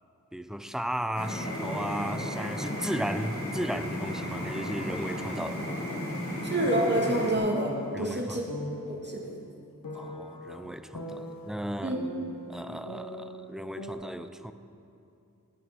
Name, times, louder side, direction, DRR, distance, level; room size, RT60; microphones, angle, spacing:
voice 1, 0.3-5.6 6.3-6.4 7.9-8.4 9.9-12.0 12.5-14.5, equal, ahead, 9 dB, 0.6 m, -35 dB
sound 1, 1.1-7.3, equal, 40° left, 3.0 m, -34 dB
voice 2, 6.4-8.4 8.9-9.3 11.8-12.0, right 1 dB, 30° right, -2 dB, 2.8 m, -28 dB
sound 2, 6.6-8.0 8.5-9.0 9.8-11.5 11.9-13.5 13.8-13.9, left 2 dB, 75° left, 1.8 m, -39 dB
16.0 x 9.0 x 6.1 m, 2.6 s
wide cardioid pair, 45°, 34 cm